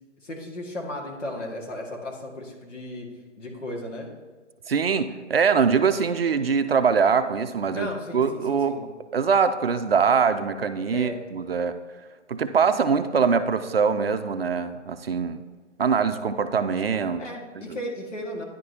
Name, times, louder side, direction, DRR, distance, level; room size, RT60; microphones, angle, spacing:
voice 1, 0.2-3.1 3.4-4.1 7.7-8.9 10.9-11.2 17.2-18.4, left 1 dB, 80° left, -1 dB, 1.9 m, -35 dB
voice 2, 4.7-8.8 9.1-11.8 12.3-15.4 15.8-17.2 17.7-17.8, right 6 dB, 55° right, 10 dB, 0.5 m, -23 dB
10.0 x 4.8 x 2.8 m, 1.4 s
hypercardioid pair, 165°, 37 cm